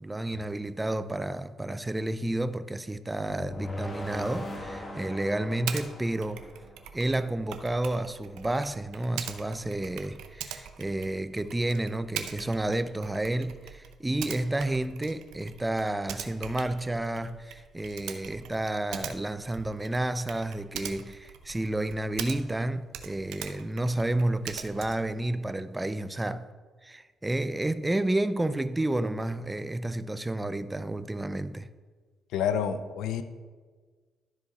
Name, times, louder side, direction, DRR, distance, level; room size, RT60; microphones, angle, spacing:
voice 1, 0.0-6.5 6.9-26.5 26.8-31.7, right 1 dB, 15° right, 0.4 m, -31 dB
sound 1, 3.3-7.3, left 1 dB, 35° left, 1.4 m, -40 dB
Typing, 5.7-5.9 6.2-22.6 22.9-25.1, right 9 dB, 90° right, 0.6 m, -42 dB
voice 2, 32.3-33.2, left 8 dB, 85° left, 0.5 m, -28 dB
12.0 x 4.9 x 4.2 m
cardioid pair, 90°, 0 cm